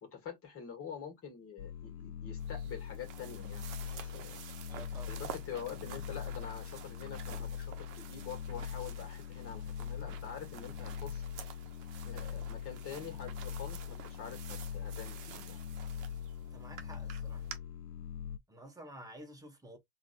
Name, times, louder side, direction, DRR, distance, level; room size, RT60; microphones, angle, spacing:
voice 1, 0.0-4.4 5.1-11.2 12.0-15.6, left 7 dB, 30° left, 1.6 m, -46 dB
sound 1, 1.6-18.4, left 9 dB, 80° left, 0.6 m, -42 dB
sound 2, 2.4-17.6, right 9 dB, 45° right, 0.9 m, -51 dB
voice 2, 4.7-5.2 16.4-17.4 18.5-19.8, right 1 dB, 10° right, 1.2 m, -51 dB
3.8 x 2.6 x 2.5 m
hypercardioid pair, 95°, 43 cm